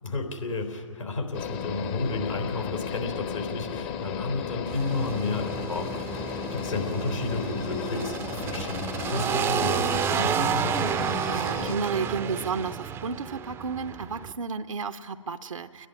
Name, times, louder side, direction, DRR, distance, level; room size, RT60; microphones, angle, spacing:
voice 1, 0.0-10.9, left 3 dB, 80° left, 2 dB, 3.8 m, -32 dB
sound 1, 1.3-11.8, left 8 dB, 30° left, 0.7 m, -35 dB
sound 2, 4.7-14.3, right 9 dB, 15° right, 0.4 m, -31 dB
voice 2, 11.2-15.9, right 5 dB, 80° right, 7 dB, 0.7 m, -32 dB
29.5 x 11.0 x 9.9 m, 2.6 s
figure-of-eight pair, 125°, 17 cm